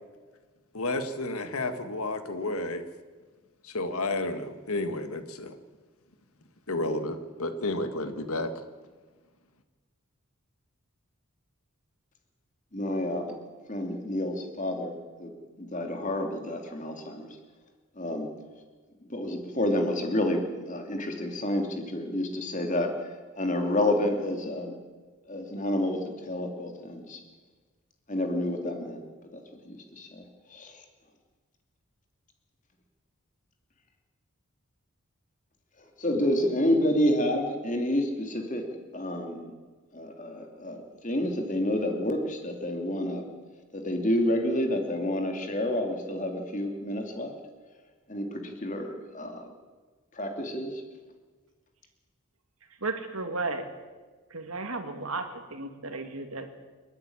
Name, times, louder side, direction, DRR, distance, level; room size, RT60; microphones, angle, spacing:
voice 1, 0.7-2.8 3.6-5.6 6.7-8.5, left 2 dB, 75° left, 9 dB, 1.7 m, -31 dB
voice 2, 12.7-13.4 13.7-14.9 15.2-15.3 15.6-17.3 18.0-18.3 19.1-22.9 23.4-24.8 25.3-27.2 28.1-29.0 29.3-30.8 36.0-39.5 39.9-43.3 43.7-47.3 48.1-49.5 50.1-50.8, left 1 dB, 35° left, 4 dB, 2.7 m, -29 dB
voice 3, 52.8-53.7 54.3-56.5, right 3 dB, 75° right, 6 dB, 2.3 m, -34 dB
28.5 x 9.7 x 9.9 m, 1.4 s
head